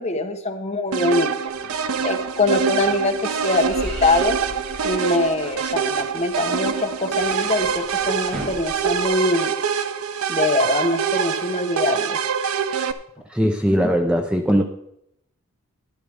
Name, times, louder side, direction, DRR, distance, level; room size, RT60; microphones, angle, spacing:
voice 1, 0.0-1.3 2.0-4.4 4.8-9.5 10.3-12.2, left 2 dB, 30° left, 5 dB, 0.9 m, -23 dB
sound 1, 0.9-12.9, right 6 dB, 70° right, 0.6 m, -25 dB
sound 2, 1.5-9.1, right 1 dB, 40° right, 3.4 m, -38 dB
voice 2, 13.3-14.6, equal, 5° right, 4 dB, 0.6 m, -19 dB
12.5 x 11.0 x 3.4 m, 0.76 s
head